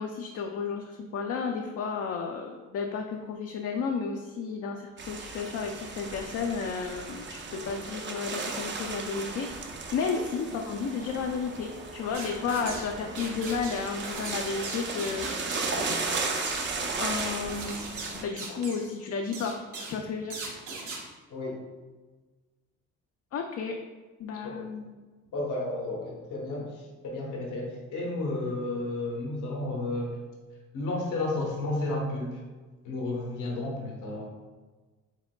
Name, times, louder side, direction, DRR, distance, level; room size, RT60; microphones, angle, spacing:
voice 1, 0.0-9.5 9.9-15.3 17.0-17.8 18.1-19.6 19.9-20.4 23.3-23.8 24.2-25.0, left 5 dB, 55° left, 2 dB, 0.4 m, -32 dB
sound 1, 5.0-18.2, right 3 dB, 40° right, 0.6 m, -35 dB
sound 2, 12.1-12.9 13.1-18.9 19.3-20.0 20.3-21.0, right 3 dB, 75° right, 1.0 m, -39 dB
voice 2, 21.3-21.6 24.4-24.6 25.3-26.7 27.0-30.2 30.7-32.4 32.8-34.2, left 2 dB, 90° left, -2 dB, 1.1 m, -32 dB
4.8 x 3.6 x 2.2 m, 1.3 s
cardioid pair, 90°, 30 cm